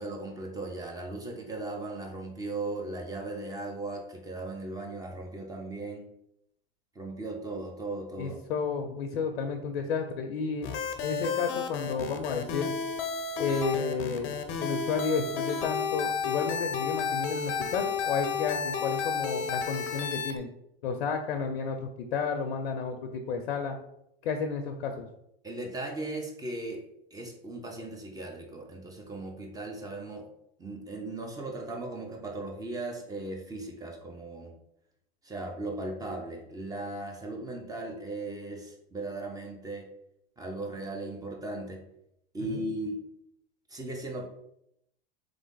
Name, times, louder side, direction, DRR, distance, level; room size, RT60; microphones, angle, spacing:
voice 1, 0.0-6.0 6.9-8.4 25.4-26.8 27.1-30.2 30.6-34.5 35.2-39.9 40.4-41.8 42.3-43.0 43.7-44.3, right 2 dB, 10° right, 2 dB, 0.9 m, -37 dB
voice 2, 8.2-10.7 11.0-12.7 13.4-14.3 14.6-20.5 20.8-23.8 24.2-25.1 42.4-42.7, left 5 dB, 85° left, 5 dB, 0.6 m, -32 dB
sound 1, 10.6-20.4, left 6 dB, 40° left, 0.7 m, -32 dB
3.7 x 3.4 x 3.9 m, 0.77 s
hypercardioid pair, 115°, 30 cm